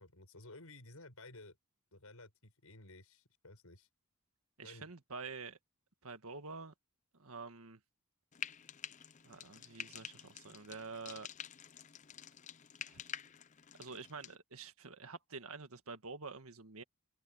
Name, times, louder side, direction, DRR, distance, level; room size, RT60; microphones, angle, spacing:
voice 1, 0.0-1.6 1.9-3.9 4.6-4.9, left 2 dB, 75° left, 6.5 m, -55 dB
voice 2, 4.6-5.6 6.0-6.7 7.1-7.8 9.2-11.3 12.9-13.0 13.8-16.8, right 4 dB, 70° right, 1.7 m, -48 dB
Frying (food), 8.3-14.4, left 9 dB, 35° left, 0.5 m, -48 dB
open air
head